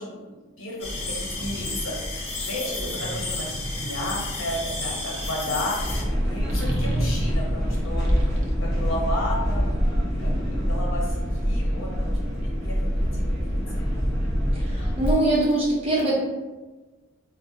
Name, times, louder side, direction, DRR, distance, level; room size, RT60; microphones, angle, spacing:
voice 1, 0.0-8.3 8.6-13.6, left 1 dB, 80° left, -3 dB, 0.9 m, -33 dB
sound 1, 0.8-6.0, left 2 dB, 30° left, 0.5 m, -32 dB
sound 2, 0.9-1.6 2.8-5.6 6.5-9.7, right 1 dB, 65° right, 0.5 m, -35 dB
sound 3, 5.8-15.2, equal, 5° right, 1.0 m, -25 dB
voice 2, 14.5-16.1, right 2 dB, 30° right, -6 dB, 0.8 m, -23 dB
2.3 x 2.1 x 3.8 m, 1.2 s
head